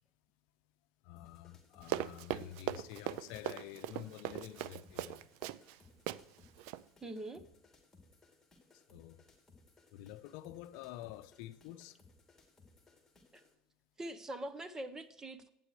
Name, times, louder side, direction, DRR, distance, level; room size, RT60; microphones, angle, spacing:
voice 1, 1.0-5.2 8.9-9.2 9.9-12.0, left 14 dB, 70° left, 0.6 m, -49 dB
sound 1, 1.2-13.5, left 3 dB, 10° left, 2.6 m, -64 dB
Run, 1.8-5.8 6.1-6.2 6.6-6.8, right 14 dB, 65° right, 0.4 m, -39 dB
voice 2, 7.0-7.4 13.3-13.4 14.0-15.5, right 1 dB, 20° right, 0.8 m, -43 dB
11.5 x 9.1 x 3.2 m
supercardioid pair, 120°, 3 cm